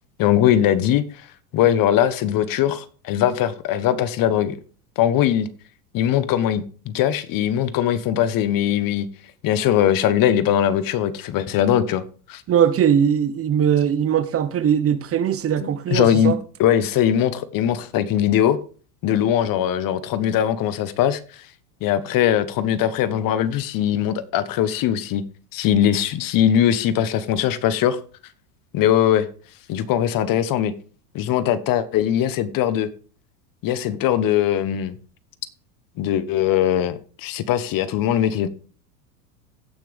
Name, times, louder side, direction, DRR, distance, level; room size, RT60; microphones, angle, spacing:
voice 1, 0.2-1.0 1.5-4.6 5.0-5.5 5.9-9.1 9.4-12.0 12.3-12.4 15.6-16.3 16.6-18.6 19.0-21.2 21.8-25.2 25.5-28.0 28.7-29.3 29.7-30.7 31.1-32.9 33.6-34.9 36.0-38.5, left 10 dB, 40° left, 1.1 m, -20 dB
voice 2, 12.5-16.4, right 8 dB, 30° right, 1.0 m, -20 dB
16.0 x 6.0 x 3.4 m
hypercardioid pair, 105°, 50 cm